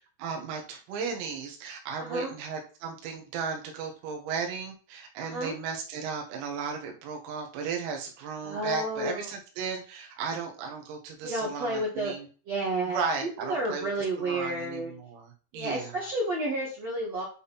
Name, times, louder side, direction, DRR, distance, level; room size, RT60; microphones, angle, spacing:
voice 1, 0.2-12.3 12.9-13.9 14.2-15.9, right 5 dB, 85° right, 3 dB, 4.4 m, -35 dB
voice 2, 2.0-2.3 5.2-5.5 8.4-9.3 11.2-12.2 12.5-13.1 13.5-14.9 15.5-17.2, right 1 dB, 60° right, -4 dB, 1.7 m, -31 dB
10.5 x 3.9 x 4.2 m, 0.38 s
omnidirectional pair, 6.0 m